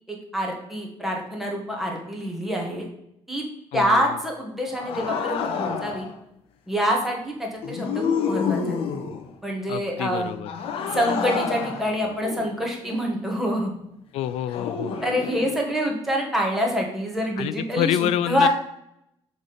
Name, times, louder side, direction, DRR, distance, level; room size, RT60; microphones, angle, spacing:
voice 1, 0.1-2.9 3.3-3.4 3.7-6.1 6.7-8.8 9.4-10.3 10.9-13.7 15.0-18.5, equal, 5° right, -1 dB, 1.3 m, -26 dB
voice 2, 3.7-4.2 9.7-10.5 14.1-14.9 17.4-18.5, left 11 dB, 80° left, 15 dB, 0.4 m, -27 dB
sound 1, 4.7-6.2 7.6-9.3 10.5-13.1 14.5-15.5, left 6 dB, 65° left, 0.8 m, -29 dB
6.4 x 3.4 x 5.4 m, 0.77 s
cardioid pair, 165°, 11 cm